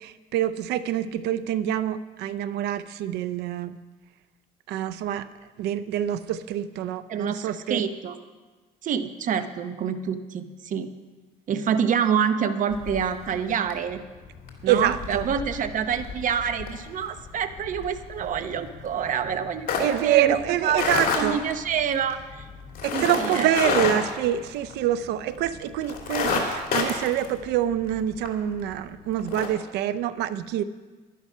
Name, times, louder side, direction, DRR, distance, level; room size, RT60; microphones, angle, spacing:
voice 1, 0.0-3.8 4.7-5.3 5.6-7.8 14.7-15.3 19.8-21.4 22.8-30.6, right 11 dB, 80° right, 14 dB, 0.6 m, -26 dB
voice 2, 7.1-8.2 8.8-10.9 11.5-14.0 14.6-20.4 20.6-22.5 22.9-23.5 23.9-24.0, right 7 dB, 50° right, 10 dB, 0.8 m, -27 dB
sound 1, 12.7-13.3 13.7-14.0 14.3-25.0 25.4-25.5 25.8-28.3 28.7-28.8 29.2-29.5, left 5 dB, 55° left, 2.6 m, -29 dB
11.0 x 11.0 x 5.5 m, 1.3 s
cardioid pair, 110°, 17 cm